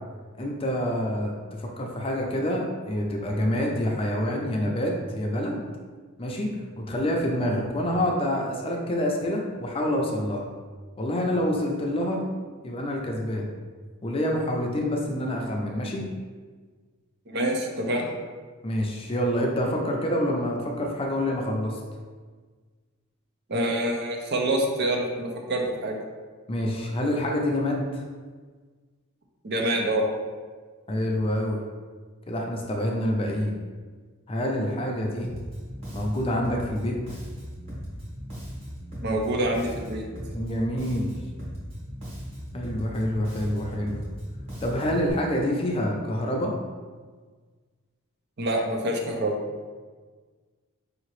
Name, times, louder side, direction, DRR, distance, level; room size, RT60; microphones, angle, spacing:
voice 1, 0.4-5.6 6.2-10.5 11.0-12.2 12.6-13.5 14.0-16.1 18.6-21.8 26.5-27.8 30.9-31.6 32.3-33.5 34.3-35.3 35.9-37.0 40.3-41.1 42.5-44.0 44.6-46.5, equal, 25° left, 0 dB, 0.5 m, -27 dB
voice 2, 17.3-18.1 23.5-26.0 29.4-30.1 39.0-40.0 48.4-49.4, right 1 dB, 50° right, 1 dB, 0.6 m, -26 dB
Bass guitar, 35.2-45.1, equal, 30° right, 1.1 m, -38 dB
5.0 x 2.8 x 3.1 m, 1.5 s
head